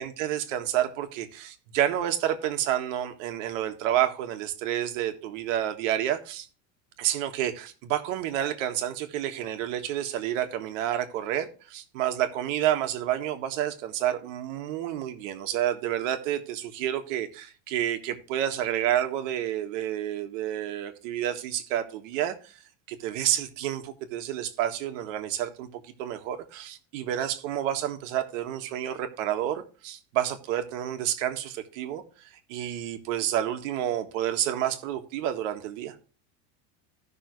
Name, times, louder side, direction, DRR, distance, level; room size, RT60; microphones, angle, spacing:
voice 1, 0.0-6.5 7.0-22.6 22.9-25.7 26.0-32.0 32.5-35.9, right 11 dB, 70° right, 1.7 m, -29 dB
15.5 x 6.1 x 3.1 m
cardioid pair, 165°, 39 cm